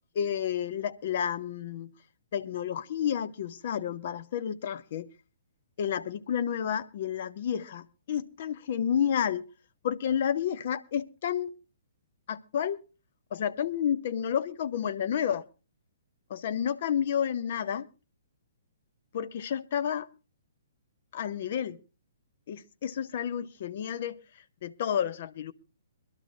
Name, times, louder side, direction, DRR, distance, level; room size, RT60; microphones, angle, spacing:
voice 1, 0.1-1.9 2.3-5.1 5.8-9.4 9.8-11.5 12.3-12.8 13.3-15.5 16.3-17.9 19.1-20.1 21.1-21.8 22.5-25.5, left 9 dB, 45° left, 0.6 m, -30 dB
23.5 x 12.0 x 2.5 m
figure-of-eight pair, 120°, 0 cm